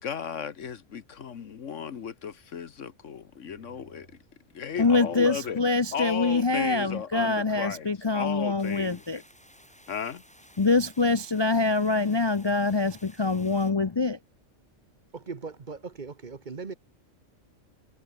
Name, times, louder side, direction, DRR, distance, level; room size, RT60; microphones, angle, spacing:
voice 1, 0.0-4.1 4.5-5.6 5.9-9.2 9.9-10.2, left 7 dB, 70° left, 1.5 m, -35 dB
voice 2, 3.5-4.1 4.8-5.5 15.1-16.7, right 4 dB, 40° right, 1.2 m, -41 dB
voice 3, 4.8-9.2 10.6-14.2, left 3 dB, 30° left, 0.5 m, -25 dB
sound 1, 8.6-13.7, equal, 5° left, 7.3 m, -55 dB
omnidirectional pair, 1.3 m